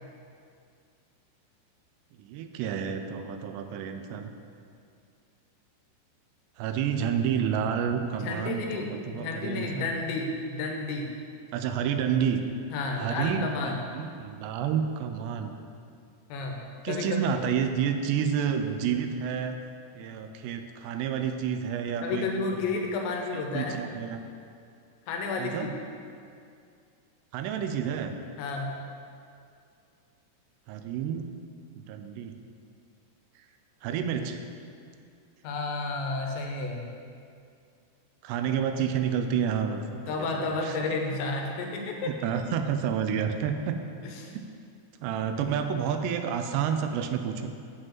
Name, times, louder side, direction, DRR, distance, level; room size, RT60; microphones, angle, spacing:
voice 1, 2.2-4.3 6.6-9.9 11.5-12.4 13.0-15.6 16.8-19.6 20.0-22.7 23.3-24.2 25.4-25.7 27.3-28.1 30.7-31.3 31.8-32.4 33.8-34.4 38.2-40.8 42.0-43.8 44.3-44.4 45.0-47.5, right 7 dB, 85° right, 7 dB, 2.7 m, -30 dB
voice 2, 8.2-11.1 12.7-13.8 16.3-17.2 22.0-23.8 25.1-25.7 28.4-28.8 35.4-36.9 40.1-42.1 44.0-44.3, left 3 dB, 90° left, 1 dB, 3.3 m, -31 dB
8.5 x 4.8 x 7.5 m, 2.3 s
omnidirectional pair, 4.9 m